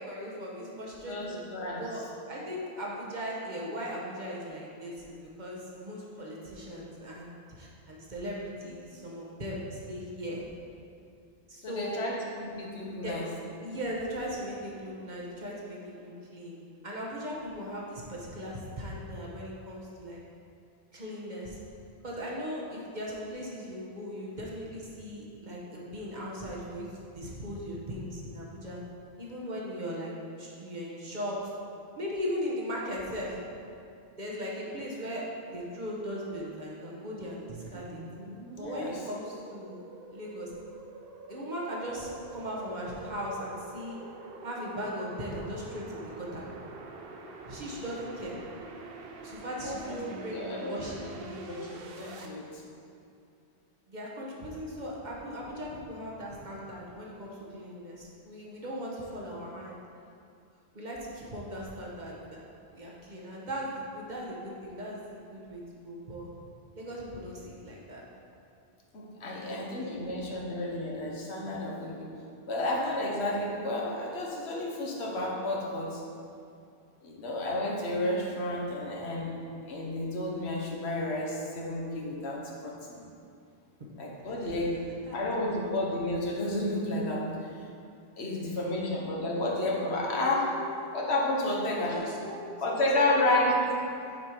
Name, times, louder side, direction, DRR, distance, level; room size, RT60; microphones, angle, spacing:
voice 1, 0.0-1.4 1.7-10.4 11.5-12.0 12.9-13.2 13.6-20.2 20.9-21.6 22.0-28.8 29.2-31.5 31.9-33.4 34.2-38.0 38.6-39.8 40.1-40.5 41.3-44.0 44.4-46.5 47.4-48.4 49.2-51.4 53.9-59.8 60.7-62.4 62.7-66.3 66.7-68.0 69.3-69.6 70.0-70.4 84.3-84.5 85.1-85.2 89.9-90.9 91.9-93.4, equal, 45° right, -4 dB, 1.1 m, -38 dB
voice 2, 1.1-1.8 11.6-13.3 38.6-39.0 49.6-51.1 51.5-52.6 68.9-72.1 72.5-76.0 77.0-79.4 79.7-83.0 84.0-84.8 85.1-87.3 88.2-90.5 90.9-92.0 92.6-93.5, left 1 dB, 75° left, -2 dB, 1.3 m, -31 dB
sound 1, 37.5-52.3, right 3 dB, 65° right, 0.8 m, -46 dB
6.5 x 4.4 x 5.0 m, 2.5 s
omnidirectional pair, 1.1 m